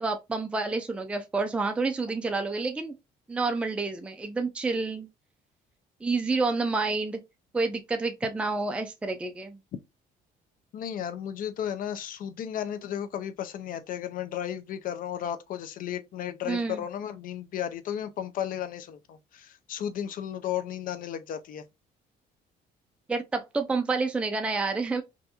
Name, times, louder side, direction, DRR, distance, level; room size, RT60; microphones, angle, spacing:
voice 1, 0.0-2.9 3.3-5.1 6.0-7.2 7.5-9.6 16.5-16.8 23.1-25.0, right 3 dB, 5° right, 0.4 m, -29 dB
voice 2, 10.7-21.6, left 10 dB, 55° left, 0.5 m, -34 dB
3.4 x 2.5 x 2.8 m
cardioid pair, 110°, 17 cm